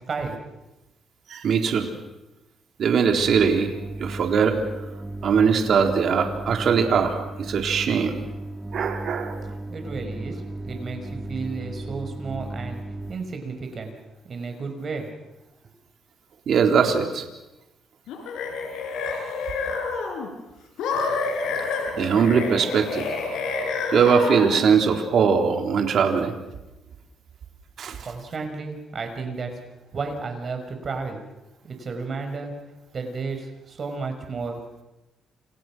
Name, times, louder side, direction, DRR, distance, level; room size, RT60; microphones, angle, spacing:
voice 1, 1.3-1.9 2.8-3.7 4.0-4.6 5.2-8.2 8.7-9.4 16.5-17.2 22.0-23.1 23.9-26.3 27.8-28.1, right 6 dB, 60° right, 4 dB, 3.9 m, -21 dB
sound 1, 3.2-13.1, right 1 dB, 20° right, 1.8 m, -35 dB
voice 2, 9.7-12.8 13.1-13.9 14.2-15.1 28.0-29.5 29.9-31.2 31.6-32.5 32.9-34.8, right 4 dB, 45° right, 5 dB, 5.9 m, -32 dB
sound 2, 18.1-20.3 20.8-24.7, left 4 dB, 85° left, 5.8 m, -28 dB
29.5 x 28.0 x 6.3 m, 1.0 s
cardioid pair, 90°, 0 cm